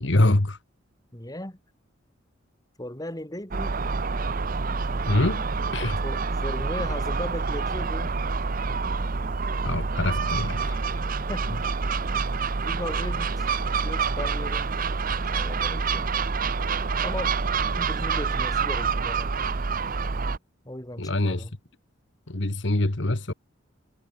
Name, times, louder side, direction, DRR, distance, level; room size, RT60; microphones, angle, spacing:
voice 1, 0.0-0.6 5.1-5.4 5.7-6.0 9.6-10.8 21.0-21.5 22.3-23.3, left 1 dB, 65° left, 1.6 m, -24 dB
voice 2, 1.1-1.6 2.8-3.8 6.0-8.2 11.3-11.5 12.6-13.5 13.8-14.8 15.3-16.0 17.0-17.4 17.8-19.5 20.6-21.5, left 1 dB, 20° left, 5.7 m, -37 dB
Gull seagull, 3.5-20.4, right 4 dB, 45° right, 0.8 m, -27 dB
head